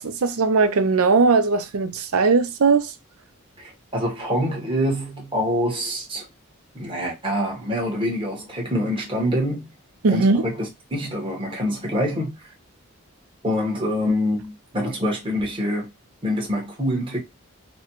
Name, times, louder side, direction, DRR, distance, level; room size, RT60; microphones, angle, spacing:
voice 1, 0.0-2.9 10.0-10.4, right 4 dB, 85° right, 0.6 m, -19 dB
voice 2, 3.6-6.3 6.7-9.6 10.1-12.5 13.4-15.9 16.2-17.2, equal, 25° right, 1.1 m, -25 dB
4.1 x 2.2 x 2.9 m
head